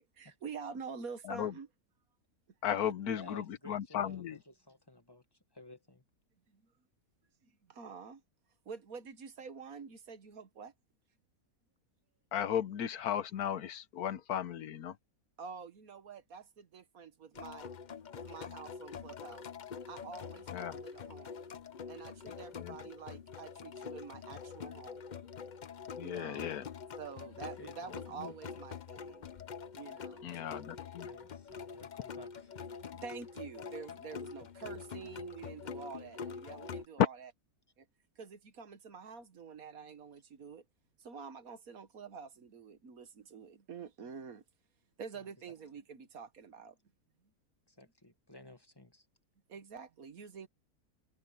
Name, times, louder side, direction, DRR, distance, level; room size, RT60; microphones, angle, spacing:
voice 1, 0.2-1.7 2.7-2.8 6.5-6.6 7.4-8.2 8.7-10.7 15.4-17.7 18.1-19.4 19.9-21.4 21.9-25.1 26.0-26.5 27.0-29.3 29.7-30.3 32.8-37.3 37.8-37.9 38.2-40.6 41.0-44.4 45.0-46.8 49.5-50.5, right 6 dB, 70° right, 1.7 m, -47 dB
voice 2, 2.6-4.4 12.3-15.0 20.5-20.8 22.6-22.8 26.0-26.7 28.2-28.3 30.2-31.1 37.0-37.1, left 9 dB, 75° left, 1.3 m, -34 dB
voice 3, 3.2-6.0 27.2-27.9 31.1-32.5 45.1-45.3 47.7-49.1, left 1 dB, 15° left, 1.2 m, -55 dB
sound 1, 17.3-36.9, left 6 dB, 50° left, 0.5 m, -46 dB
omnidirectional pair, 1.6 m